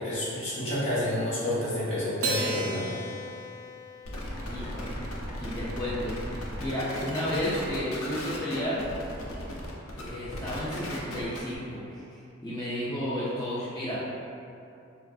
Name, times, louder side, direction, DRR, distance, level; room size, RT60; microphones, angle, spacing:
voice 1, 0.0-2.9, left 1 dB, 60° left, -9 dB, 1.0 m, -29 dB
Acoustic guitar, 2.2-4.9, right 2 dB, 85° right, 0.3 m, -35 dB
sound 1, 4.0-11.6, equal, 80° left, 0.5 m, -37 dB
voice 2, 4.5-5.0 5.4-8.8 10.0-14.0, equal, 20° left, -10 dB, 0.4 m, -32 dB
3.4 x 2.4 x 2.3 m, 2.6 s
head